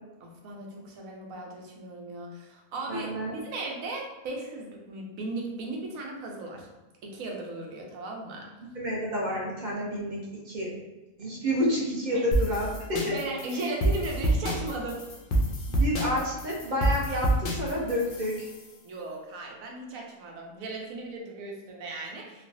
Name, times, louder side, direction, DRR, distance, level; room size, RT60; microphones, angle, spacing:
voice 1, 0.2-6.7 7.0-8.5 12.1-12.3 13.0-15.0 18.8-22.5, right 2 dB, 80° right, 0 dB, 1.1 m, -37 dB
voice 2, 2.9-3.4 8.6-10.2 10.4-10.7 11.2-13.1 15.7-18.5, equal, 45° right, -4 dB, 0.7 m, -29 dB
sound 1, 12.3-18.7, right 1 dB, 65° left, 0.4 m, -27 dB
3.1 x 2.3 x 2.5 m, 1.1 s
omnidirectional pair, 1.5 m